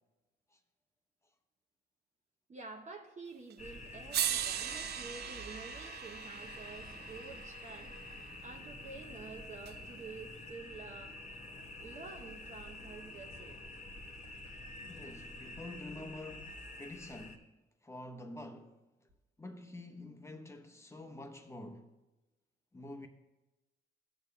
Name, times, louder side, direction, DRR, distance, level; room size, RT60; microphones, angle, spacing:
voice 1, 2.5-7.9 8.4-11.2 11.8-13.6, right 4 dB, 35° right, 0.8 m, -49 dB
sound 1, 3.5-3.6 4.1-8.3 9.7-9.8, right 10 dB, 55° right, 0.4 m, -39 dB
sound 2, 3.6-17.4, left 2 dB, 35° left, 1.2 m, -48 dB
voice 2, 14.9-17.5 17.8-18.8 19.4-21.9 22.7-23.1, left 1 dB, 15° left, 0.8 m, -47 dB
14.0 x 6.6 x 2.3 m
cardioid pair, 90°, 20 cm